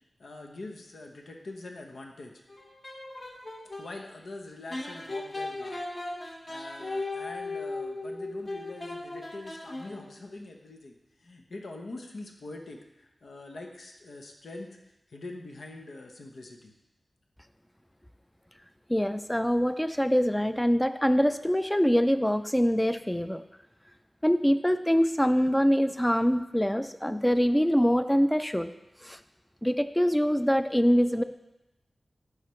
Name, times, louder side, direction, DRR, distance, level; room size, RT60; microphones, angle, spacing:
voice 1, 0.2-2.3 3.8-5.8 6.5-14.7 15.1-16.7, left 2 dB, 90° left, 2 dB, 0.9 m, -44 dB
sound 1, 2.5-3.9 4.7-10.2, left 2 dB, 45° left, 1.3 m, -37 dB
voice 2, 18.9-23.4 24.2-28.7 29.0-29.2 29.6-31.2, equal, 10° left, 10 dB, 0.4 m, -24 dB
11.5 x 4.9 x 3.2 m, 0.96 s
wide cardioid pair, 90°, 0 cm